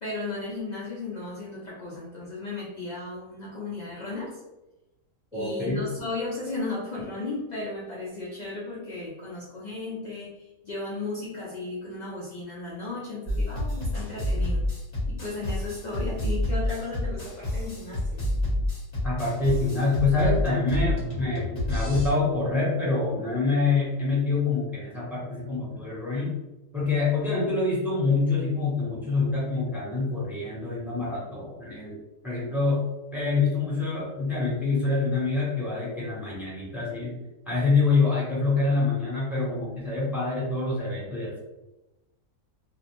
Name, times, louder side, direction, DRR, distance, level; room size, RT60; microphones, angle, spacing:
voice 1, 0.0-4.4 5.3-14.6 15.1-18.2, left 2 dB, 70° left, -6 dB, 0.4 m, -35 dB
voice 2, 5.3-5.8 19.0-26.3 26.7-32.0 32.2-32.8 33.1-37.2 37.5-41.4, left 3 dB, ahead, -6 dB, 0.7 m, -26 dB
sound 1, 13.3-22.1, left 1 dB, 35° left, 1.0 m, -28 dB
2.4 x 2.0 x 2.9 m, 0.99 s
omnidirectional pair, 1.4 m